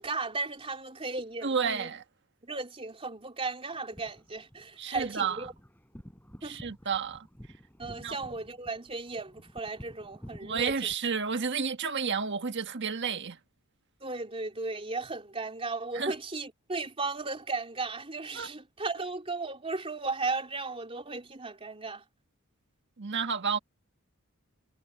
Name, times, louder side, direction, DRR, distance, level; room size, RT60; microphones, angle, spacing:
voice 1, 0.0-1.9 2.4-5.5 6.4-6.6 7.8-10.7 14.0-22.0, right 3 dB, 25° right, 3.3 m, -35 dB
voice 2, 1.4-2.0 4.8-5.5 6.4-7.3 8.0-8.1 10.4-13.4 15.9-16.1 18.3-18.5 23.0-23.6, right 6 dB, 55° right, 1.4 m, -31 dB
sound 1, 3.7-10.9, equal, 10° left, 6.3 m, -51 dB
head